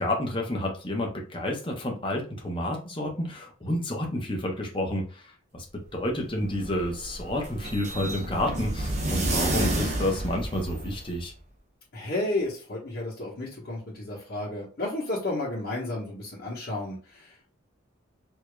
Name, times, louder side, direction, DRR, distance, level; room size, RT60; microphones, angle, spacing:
voice 1, 0.0-5.0 5.5-5.6 5.9-11.3, left 1 dB, 25° left, 0 dB, 0.9 m, -30 dB
sound 1, 6.2-11.2, right 1 dB, 35° right, 0.9 m, -30 dB
voice 2, 11.9-17.5, left 2 dB, 50° left, -7 dB, 1.2 m, -32 dB
4.9 x 2.9 x 2.2 m, 0.38 s
head